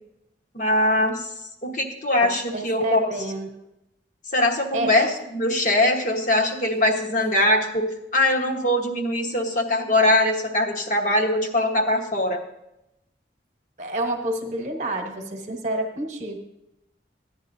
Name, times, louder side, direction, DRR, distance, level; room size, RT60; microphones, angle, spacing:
voice 1, 0.5-1.3 1.6-3.0 4.3-7.9 8.1-12.4, left 1 dB, 45° left, 1 dB, 1.3 m, -22 dB
voice 2, 2.2-3.7 4.7-4.9 13.8-16.4, right 1 dB, 40° right, 3 dB, 1.2 m, -29 dB
15.0 x 10.0 x 2.7 m, 0.87 s
head